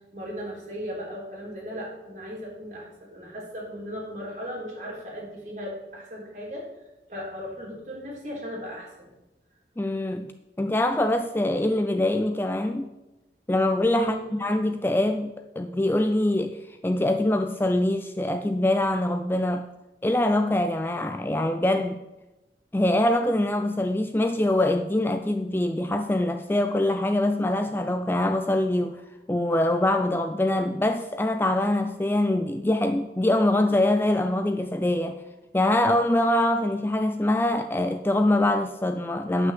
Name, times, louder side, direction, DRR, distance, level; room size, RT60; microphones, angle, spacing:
voice 1, 0.1-6.7 7.1-9.1 13.9-14.3, equal, 45° right, 3.3 m, -37 dB
voice 2, 9.8-10.3 10.6-12.9 13.5-19.7 20.0-22.0 22.7-29.0 29.3-35.2 35.5-39.5, left 1 dB, 10° left, 0.4 m, -24 dB
9.6 x 5.9 x 7.6 m
head